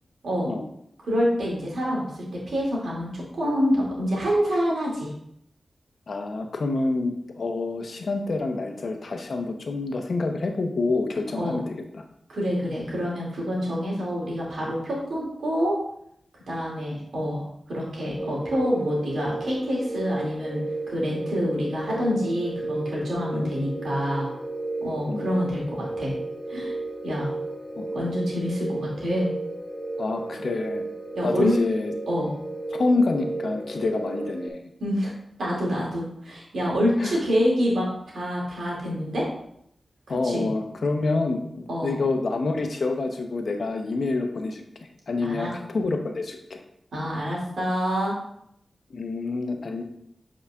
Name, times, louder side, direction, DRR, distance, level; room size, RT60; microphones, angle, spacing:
voice 1, 1.0-2.1 2.5-5.1 11.3-11.6 12.3-15.8 16.5-24.3 24.8-26.1 26.5-26.7 27.0-27.3 27.9-29.3 31.1-31.6 32.1-32.3 34.8-35.1 35.4-39.3 40.1-40.5 41.7-42.0 45.2-45.5 46.9-48.1, equal, 85° right, -4 dB, 2.4 m, -27 dB
voice 2, 6.1-12.0 23.3-23.5 25.1-25.3 27.8-27.9 30.0-30.8 31.2-31.9 32.7-34.6 37.0-37.2 40.1-44.6 45.1-46.6 48.9-49.8, left 3 dB, 70° left, 4 dB, 0.8 m, -27 dB
sound 1, 18.2-34.5, right 2 dB, 15° left, 1.3 m, -33 dB
8.0 x 4.9 x 2.4 m, 0.72 s
cardioid pair, 45°, 0 cm